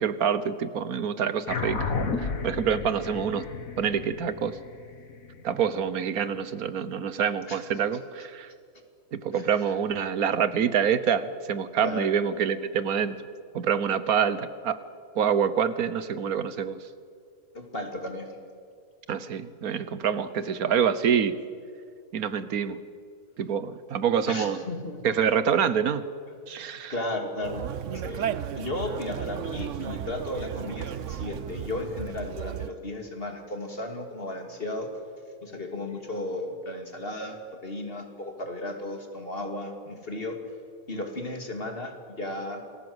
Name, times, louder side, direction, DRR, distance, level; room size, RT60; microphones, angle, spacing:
voice 1, 0.0-1.9 2.2-3.5 3.8-4.6 5.4-8.5 9.1-13.2 13.5-14.8 15.1-16.8 19.1-21.4 22.1-22.8 23.4-24.6 25.0-26.0 26.5-26.9, right 7 dB, 90° right, 14 dB, 1.6 m, -26 dB
sound 1, 1.5-6.2, left 4 dB, 75° left, 2.2 m, -33 dB
voice 2, 9.3-9.7 11.8-12.1 17.5-18.3 24.3-25.1 26.5-27.7 27.9-28.3 28.5-34.9 35.4-40.4 40.9-42.6, left 1 dB, 40° left, 4 dB, 3.0 m, -35 dB
Conversation, 27.4-32.7, right 9 dB, 65° right, 1.1 m, -34 dB
28.0 x 19.5 x 8.0 m, 2.2 s
omnidirectional pair, 1.5 m